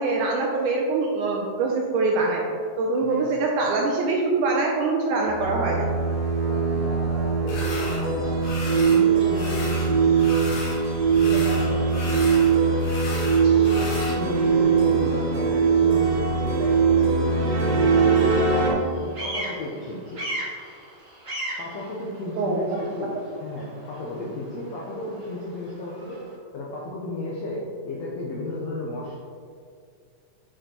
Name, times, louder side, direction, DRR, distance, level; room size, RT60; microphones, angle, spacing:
voice 1, 0.0-5.9 22.4-22.8, right 3 dB, 85° right, -1 dB, 1.8 m, -24 dB
sound 1, 5.3-18.7, right 5 dB, 65° right, 1.6 m, -21 dB
voice 2, 6.4-8.4 8.7-10.4 11.2-12.9 13.4-17.3 17.6-20.2 21.6-26.2 26.5-29.2, left 2 dB, 85° left, -4 dB, 1.4 m, -34 dB
sound 2, 7.5-8.0 8.4-9.0 9.3-10.8 11.1-14.2, left 2 dB, 70° left, 2.1 m, -35 dB
Bird vocalization bird call bird song, 7.6-26.4, right 1 dB, 40° right, 1.1 m, -41 dB
7.6 x 4.8 x 2.9 m, 2.3 s
omnidirectional pair, 4.1 m